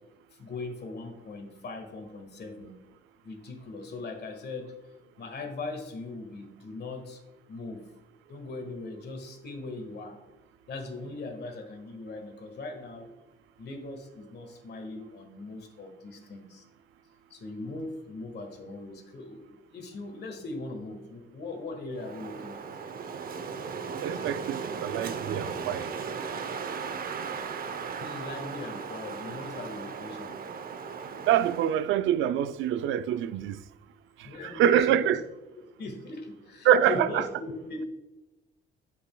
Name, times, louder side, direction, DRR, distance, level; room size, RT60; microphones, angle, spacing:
voice 1, 0.4-2.7 3.2-4.7 5.2-7.2 7.5-7.8 8.3-10.1 10.7-13.1 13.6-16.6 17.3-22.6 28.0-30.4 34.2-35.2 35.8-37.8, left 2 dB, 55° left, 1.7 m, -39 dB
Wind, 21.9-31.8, right 6 dB, 50° right, 0.7 m, -37 dB
voice 2, 24.0-25.9 31.3-33.6 34.4-35.2 36.6-37.2, right 10 dB, 80° right, 0.4 m, -25 dB
9.0 x 7.0 x 2.3 m
cardioid pair, 90°, 20 cm